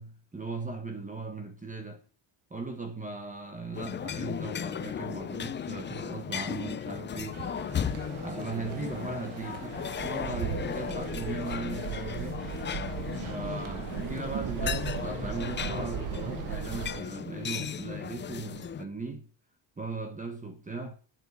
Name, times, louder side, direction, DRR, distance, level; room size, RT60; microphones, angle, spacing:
voice 1, 0.0-2.0 2.5-7.4 8.2-12.4 13.3-19.3 19.8-21.0, right 3 dB, 15° right, 1.3 m, -38 dB
sound 1, 3.7-18.8, left 8 dB, 25° left, 0.4 m, -36 dB
sound 2, 7.3-16.6, right 9 dB, 80° right, 1.5 m, -41 dB
Bird, 9.7-17.0, right 13 dB, 45° right, 0.5 m, -39 dB
7.7 x 7.6 x 6.9 m
cardioid pair, 140°, 47 cm